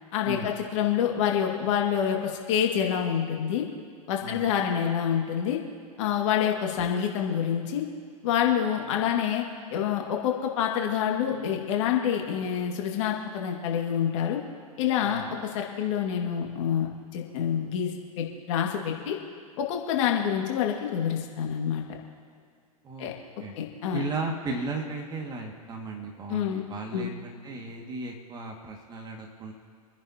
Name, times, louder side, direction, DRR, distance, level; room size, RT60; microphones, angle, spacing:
voice 1, 0.1-3.6 4.1-5.6 6.0-7.8 8.2-9.4 9.7-14.4 14.8-19.2 19.6-21.8 23.0-23.1 23.6-24.0 26.3-26.6 26.9-27.1, left 9 dB, 50° left, 1 dB, 2.2 m, -27 dB
voice 2, 4.2-4.5 15.0-15.3 22.8-23.1 23.4-23.6 23.9-29.5, right 3 dB, 20° right, 1 dB, 2.2 m, -35 dB
28.5 x 10.5 x 3.0 m, 2.2 s
figure-of-eight pair, 105°, 19 cm